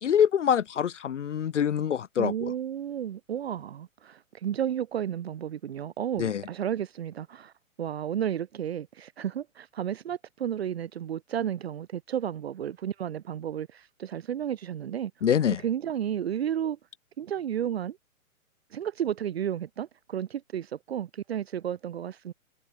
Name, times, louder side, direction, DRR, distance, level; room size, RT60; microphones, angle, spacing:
voice 1, 0.0-2.5 6.2-6.4 15.2-15.6, left 8 dB, 55° left, 1.5 m, -25 dB
voice 2, 2.2-7.5 7.8-15.3 15.6-16.8 17.2-18.0 18.7-22.3, right 9 dB, 45° right, 2.3 m, -32 dB
hypercardioid pair, 170°, 43 cm